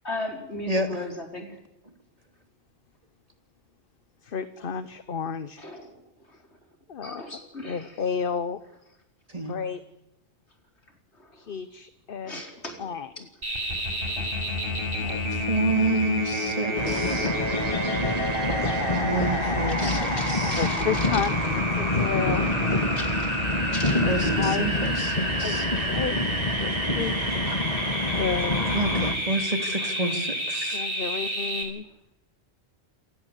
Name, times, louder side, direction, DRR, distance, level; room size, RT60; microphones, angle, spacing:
voice 1, 0.0-1.6 5.6-6.6 7.0-8.0 9.5-9.7 11.1-11.5 12.2-13.2 14.0-15.1 15.6-15.7 16.7-17.8 19.7-21.2 22.5-23.4 23.7-24.0 29.8-29.9, left 1 dB, 70° left, 3 dB, 4.9 m, -39 dB
voice 2, 4.2-5.7 6.9-7.2 7.6-8.6 9.5-9.8 11.3-12.4 12.8-13.1 15.0-15.2 20.6-21.3 21.8-22.5 24.4-24.7 25.4-25.6 25.9-26.2 26.6-27.4 28.2-28.7 30.7-31.8, left 6 dB, 55° left, 13 dB, 1.2 m, -31 dB
sound 1, 13.4-31.6, equal, 50° right, 6.1 m, -30 dB
voice 3, 15.3-17.3 18.2-18.3 19.0-20.7 24.1-25.7 28.7-30.8, right 2 dB, 30° right, 6 dB, 2.9 m, -29 dB
sound 2, 16.7-29.1, left 2 dB, 35° left, 2.3 m, -27 dB
27.5 x 16.5 x 8.3 m, 0.93 s
omnidirectional pair, 1.2 m